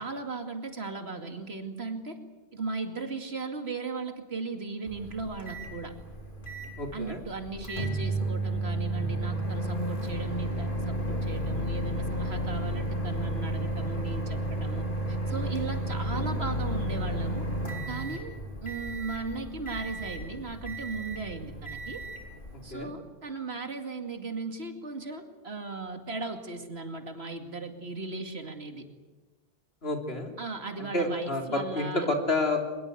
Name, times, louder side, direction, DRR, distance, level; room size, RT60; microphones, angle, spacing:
voice 1, 0.0-2.2 2.5-5.9 6.9-17.5 17.9-22.0 22.6-28.9 30.4-32.1, right 3 dB, 85° right, 5 dB, 2.6 m, -37 dB
Microwave oven, 4.9-22.8, right 1 dB, 55° left, 3.3 m, -33 dB
voice 2, 6.8-7.2 22.7-22.9 29.8-30.3 30.8-32.6, left 2 dB, 75° left, 2 dB, 3.7 m, -29 dB
23.0 x 22.0 x 8.1 m, 1.3 s
omnidirectional pair, 1.0 m